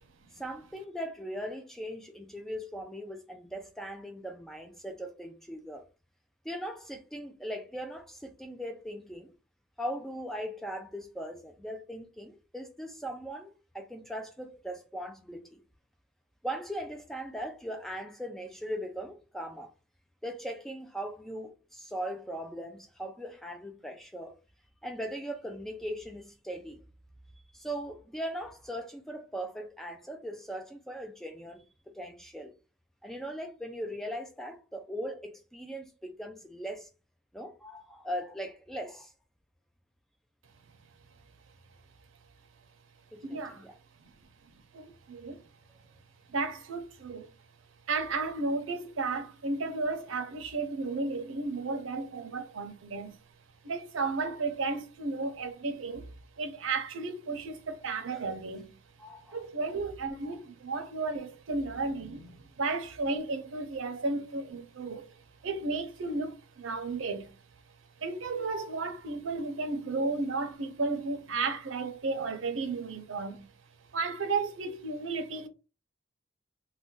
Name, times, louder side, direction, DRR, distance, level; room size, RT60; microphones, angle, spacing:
voice 1, 0.3-5.8 6.4-9.3 9.8-15.6 16.4-19.7 20.2-24.3 24.8-26.8 27.5-31.6 31.9-32.5 33.0-36.9 37.3-39.1 43.1-43.7 58.1-58.2 59.0-59.4, equal, ahead, 0.3 m, -39 dB
voice 2, 43.2-43.7 44.7-45.4 46.3-47.3 47.9-53.2 53.6-56.1 56.4-58.7 59.3-65.2 65.4-67.3 68.0-73.4 73.9-75.5, right 3 dB, 85° right, 0.6 m, -33 dB
2.5 x 2.2 x 3.7 m
head